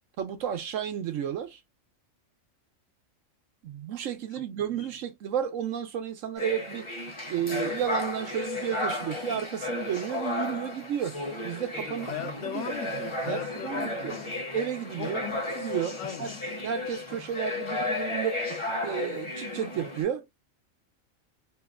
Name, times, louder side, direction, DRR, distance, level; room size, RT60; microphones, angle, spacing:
voice 1, 0.2-1.6 3.6-6.9 7.3-12.1 12.4-12.7 13.2-14.2 14.5-15.2 15.6-16.3 16.6-18.5 18.8-20.2, right 9 dB, 75° right, 1.1 m, -32 dB
voice 2, 4.4-4.9 11.9-14.4 15.0-15.4 16.0-16.5, left 9 dB, 70° left, 0.9 m, -38 dB
sound 1, 6.4-20.0, left 2 dB, 25° left, 0.7 m, -34 dB
3.0 x 2.1 x 2.3 m
omnidirectional pair, 1.4 m